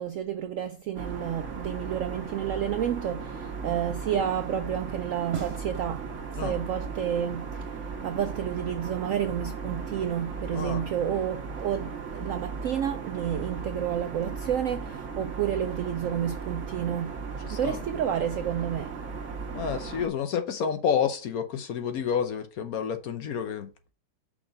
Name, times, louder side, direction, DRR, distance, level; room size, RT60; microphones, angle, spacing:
voice 1, 0.0-6.0 6.3-7.7 8.0-17.1 17.5-18.9, right 9 dB, 85° right, 0.7 m, -30 dB
sound 1, 1.0-20.1, right 5 dB, 45° right, 1.3 m, -37 dB
voice 2, 17.4-17.8 19.5-23.7, left 7 dB, 65° left, 1.0 m, -29 dB
5.9 x 4.2 x 5.1 m
omnidirectional pair, 2.0 m